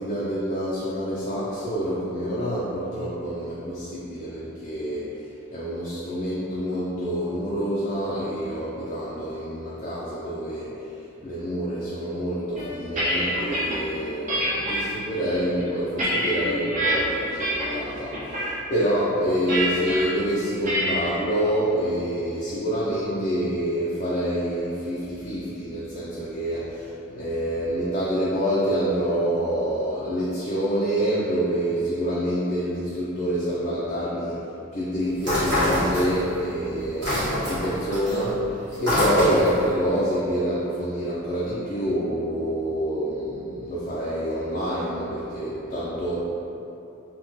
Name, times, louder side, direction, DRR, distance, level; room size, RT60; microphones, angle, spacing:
voice 1, 0.0-34.5 34.7-46.2, equal, 35° left, -8 dB, 0.4 m, -27 dB
sound 1, 12.6-13.8 14.3-14.8 15.4-16.9 17.4-17.8 18.1-18.5 19.5-20.0 20.6-21.0, equal, 40° right, 0.6 m, -26 dB
sound 2, 35.2-36.4 36.7-39.7, left 1 dB, 65° right, 1.4 m, -24 dB
3.5 x 2.2 x 2.6 m, 2.9 s
head